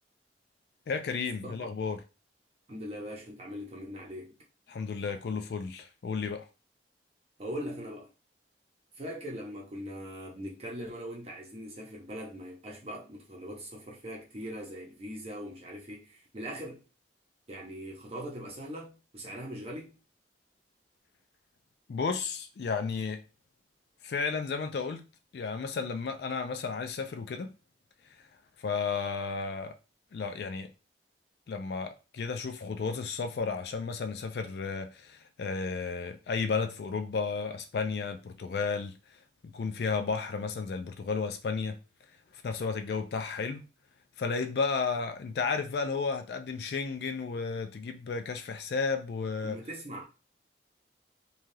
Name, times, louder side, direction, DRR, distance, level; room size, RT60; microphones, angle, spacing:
voice 1, 0.9-2.0 4.7-6.5 21.9-23.2 24.0-25.0 25.3-27.5 28.1-28.2 28.6-29.8 30.1-30.7 31.5-41.8 42.3-43.6 44.2-49.6, left 5 dB, 65° left, 0.3 m, -33 dB
voice 2, 2.7-4.4 7.4-8.1 9.0-16.8 17.5-20.0 49.4-50.0, equal, 35° right, 0.7 m, -41 dB
3.2 x 2.3 x 2.6 m
head